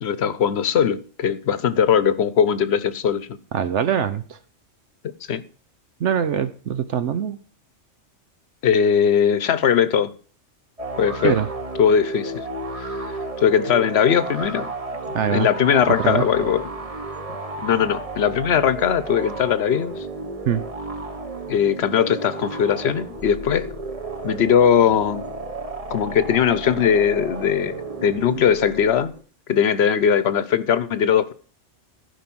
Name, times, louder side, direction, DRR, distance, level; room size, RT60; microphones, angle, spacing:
voice 1, 0.0-3.3 5.3-5.4 8.6-10.1 11.0-11.4 11.8-12.4 12.8-13.1 13.4-14.7 15.3-16.7 17.6-20.1 21.5-23.7 24.2-25.2 25.9-29.1 29.5-31.3, left 8 dB, 60° left, 1.0 m, -20 dB
voice 2, 3.5-4.4 6.0-7.4 11.2-11.5 15.1-15.5 15.9-16.2 20.5-20.6, right 8 dB, 70° right, 1.0 m, -23 dB
sound 1, 10.8-29.2, right 2 dB, 30° right, 1.4 m, -32 dB
15.0 x 5.3 x 6.1 m
omnidirectional pair, 1.3 m